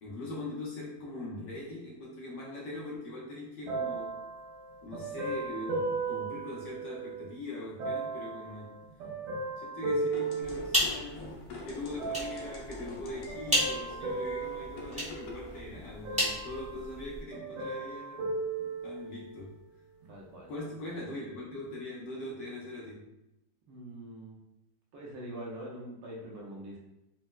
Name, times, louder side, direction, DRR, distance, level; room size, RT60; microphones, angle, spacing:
voice 1, 0.0-4.2 4.8-8.7 9.6-18.3 18.6-19.6 20.5-23.1, left 2 dB, 70° left, -5 dB, 1.2 m, -41 dB
sound 1, 3.7-7.3 7.8-11.3 12.0-12.7 13.3-15.6 16.0-17.1 17.3-19.4 20.0-20.1, right 3 dB, 90° right, 1.7 m, -36 dB
sound 2, 10.1-15.6, left 3 dB, 85° left, 1.6 m, -47 dB
sound 3, 10.4-17.2, equal, 10° right, 0.4 m, -35 dB
voice 2, 20.1-20.5 23.7-24.4 24.9-26.8, right 1 dB, 70° right, -4 dB, 1.3 m, -43 dB
4.2 x 2.0 x 2.2 m, 0.90 s
omnidirectional pair, 2.4 m